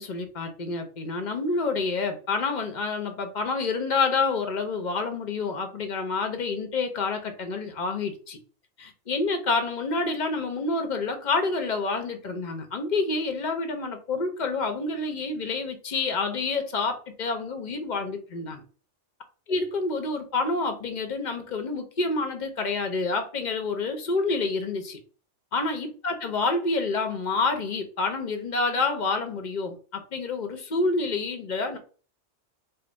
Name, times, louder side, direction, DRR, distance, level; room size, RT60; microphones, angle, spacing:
voice 1, 0.0-8.4 8.8-18.6 19.5-25.0 25.5-31.8, left 3 dB, 45° left, 5 dB, 0.7 m, -28 dB
3.4 x 2.1 x 3.9 m, 0.39 s
omnidirectional pair, 1.2 m